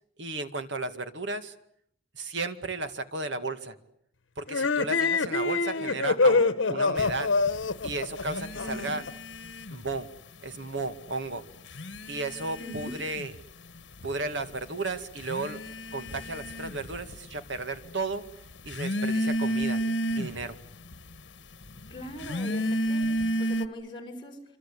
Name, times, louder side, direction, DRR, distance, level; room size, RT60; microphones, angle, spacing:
voice 1, 0.2-1.5 2.1-3.7 4.4-6.4 6.7-7.3 7.8-9.0 9.7-10.1 10.4-11.4 12.1-13.3 14.0-15.6 15.9-18.2 18.6-19.8 20.1-20.6, right 3 dB, 70° right, 9 dB, 2.0 m, -34 dB
sound 1, 4.5-9.1, left 3 dB, 85° left, 1.1 m, -25 dB
voice 2, 6.2-7.0 8.6-8.9 12.6-12.9 21.9-22.6 22.9-24.4, left 1 dB, 25° left, 1 dB, 6.7 m, -41 dB
sound 2, 7.0-10.1 10.3-11.1 11.6-23.7, equal, 70° left, 1.6 m, -33 dB
26.5 x 26.0 x 8.6 m, 0.72 s
head